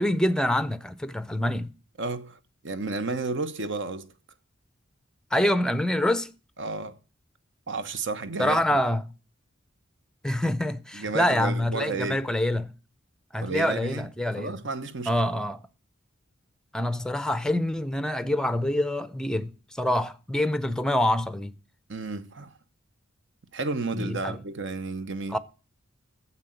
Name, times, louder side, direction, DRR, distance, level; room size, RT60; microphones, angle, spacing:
voice 1, 0.0-1.7 5.3-6.3 8.4-9.0 10.2-12.7 13.3-14.6 15.1-15.6 16.7-21.6 23.9-24.4 25.3-25.4, left 1 dB, 5° left, 0.5 m, -26 dB
voice 2, 2.0-4.1 6.6-7.0 7.7-8.8 10.9-12.3 13.4-14.1 14.4-15.1 21.9-22.5 23.5-25.4, right 3 dB, 60° right, 1.0 m, -32 dB
9.7 x 7.6 x 7.9 m
head